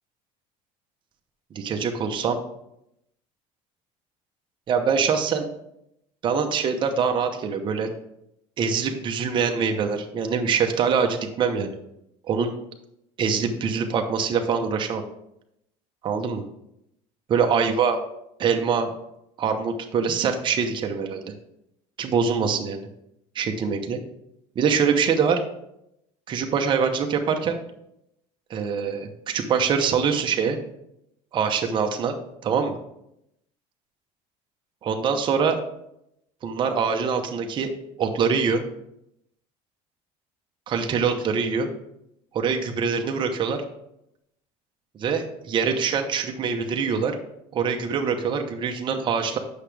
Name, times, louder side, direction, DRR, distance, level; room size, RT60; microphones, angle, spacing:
voice 1, 1.5-2.4 4.7-5.5 6.2-7.9 8.6-11.7 12.3-12.5 13.2-15.0 16.0-16.4 17.3-18.0 18.4-18.9 19.4-21.3 22.0-22.8 23.3-24.0 24.6-25.4 26.3-27.6 28.5-30.6 31.3-32.2 32.4-32.8 34.8-35.6 36.4-37.7 38.0-38.6 40.7-41.7 42.3-43.6 44.9-47.2 47.5-49.4, right 6 dB, 35° right, 4 dB, 0.8 m, -24 dB
8.2 x 5.9 x 3.4 m, 0.81 s
cardioid pair, 140°, 14 cm